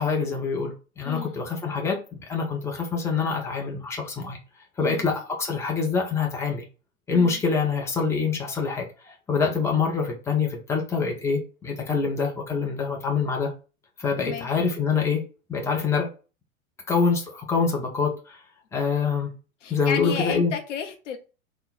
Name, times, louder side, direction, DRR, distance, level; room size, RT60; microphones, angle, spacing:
voice 1, 0.0-4.4 4.8-6.6 7.1-13.5 14.0-15.2 15.5-16.1 16.9-18.4 18.7-19.3 19.7-20.5, left 5 dB, 5° left, 0.7 m, -25 dB
voice 2, 1.0-1.4 4.8-5.1 7.1-7.4 14.2-14.5 19.6-21.2, left 8 dB, 60° left, 0.8 m, -32 dB
3.7 x 2.2 x 4.1 m
figure-of-eight pair, 90°, 42 cm